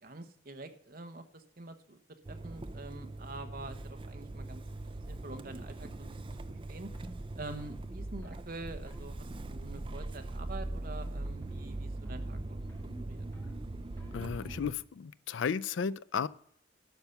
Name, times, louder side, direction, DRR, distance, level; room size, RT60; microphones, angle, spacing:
voice 1, 0.0-2.0 2.3-6.2 6.5-6.9 7.3-12.6 13.0-13.2, right 2 dB, 50° right, 1.0 m, -46 dB
Motor vehicle (road) / Engine starting, 2.3-14.7, right 2 dB, 25° right, 0.4 m, -41 dB
sound 1, 4.4-4.6 5.0-5.3 5.7-5.9 6.3-6.5 6.9-7.2 7.6-7.8 8.2-8.5 8.9-9.1 9.5-9.9 10.1-10.5 10.8-11.2 11.4-11.8 12.1-14.4, equal, 10° left, 1.8 m, -57 dB
voice 2, 14.1-16.3, left 6 dB, 75° left, 0.4 m, -34 dB
11.5 x 6.8 x 5.8 m
head